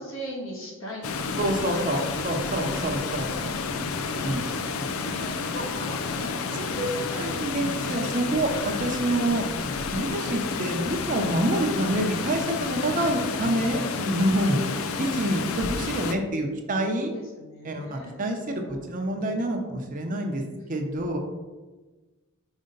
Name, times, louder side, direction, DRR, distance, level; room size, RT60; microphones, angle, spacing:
voice 1, 0.0-3.1 3.7-7.5 8.4-8.9 14.6-15.6 16.9-19.6 20.9-21.0, equal, 65° left, -2 dB, 1.5 m, -41 dB
Water, 1.0-16.1, left 5 dB, 85° left, 0.4 m, -30 dB
voice 2, 1.3-3.9 4.2-4.4 6.6-9.5 9.9-14.6 15.0-17.1 17.6-20.4 20.7-21.2, right 1 dB, 40° right, 3 dB, 0.8 m, -27 dB
5.3 x 4.9 x 3.8 m, 1.2 s
head